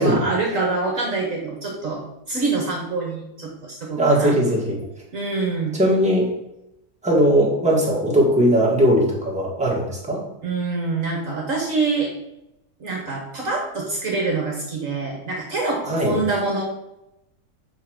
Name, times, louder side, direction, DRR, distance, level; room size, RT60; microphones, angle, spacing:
voice 1, 0.0-2.0 2.3-4.3 5.1-5.8 10.4-12.1 12.8-16.6, right 3 dB, 50° right, 0 dB, 1.5 m, -25 dB
voice 2, 4.0-4.8 5.8-6.3 7.0-10.2 15.8-16.2, right 1 dB, 5° right, -4 dB, 1.9 m, -19 dB
5.5 x 5.1 x 6.4 m, 0.88 s
omnidirectional pair, 1.8 m